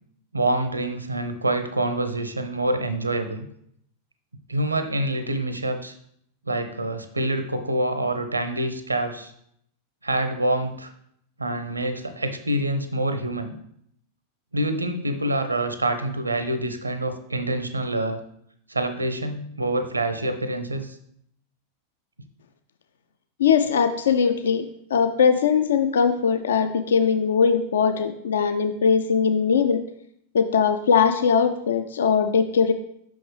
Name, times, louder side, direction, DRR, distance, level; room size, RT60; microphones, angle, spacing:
voice 1, 0.3-3.5 4.5-5.9 6.5-9.3 10.0-10.9 11.4-13.5 14.5-18.2 18.7-20.9, right 1 dB, 80° right, 9 dB, 0.6 m, -26 dB
voice 2, 23.4-24.7 24.9-29.8 30.3-32.7, left 6 dB, 65° left, 8 dB, 0.4 m, -20 dB
5.7 x 5.2 x 3.2 m, 0.70 s
figure-of-eight pair, 90°, 0 cm